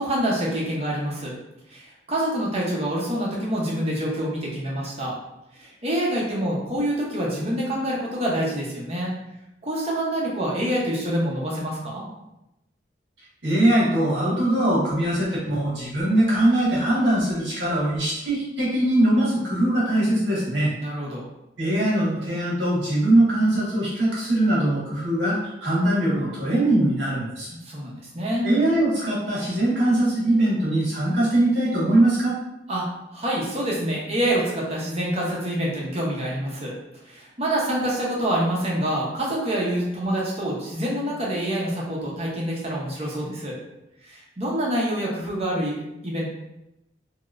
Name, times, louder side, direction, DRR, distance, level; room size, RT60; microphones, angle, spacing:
voice 1, 0.0-1.3 1.7-5.1 5.6-9.1 9.6-12.0 20.8-21.3 27.5-28.4 32.7-36.7 37.0-43.6 44.0-46.3, right 1 dB, 35° right, -4 dB, 0.8 m, -26 dB
voice 2, 13.4-20.7 21.6-27.5 28.4-32.3, right 1 dB, 85° right, -7 dB, 1.4 m, -21 dB
3.1 x 2.8 x 2.4 m, 0.88 s
head